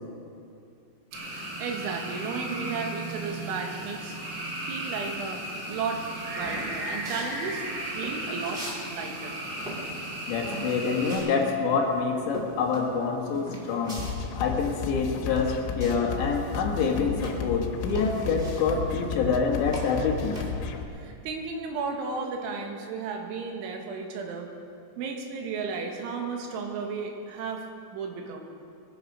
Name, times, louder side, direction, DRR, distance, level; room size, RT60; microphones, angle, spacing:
sound 1, 1.1-11.2, right 1 dB, 40° right, 3.1 m, -36 dB
voice 1, 1.1-4.2 4.6-5.4 5.7-7.7 8.0-9.4 20.9-24.5 25.0-28.4, right 4 dB, 75° right, 2 dB, 3.7 m, -34 dB
sound 2, 6.4-8.8 9.1-16.2 16.4-20.5, right 1 dB, 20° right, 1.4 m, -41 dB
voice 2, 10.3-14.0 14.4-20.4, left 5 dB, 70° left, 1 dB, 3.4 m, -26 dB
sound 3, 14.0-20.8, left 6 dB, 90° left, 3.7 m, -34 dB
22.5 x 10.0 x 5.5 m, 2.6 s
omnidirectional pair, 5.8 m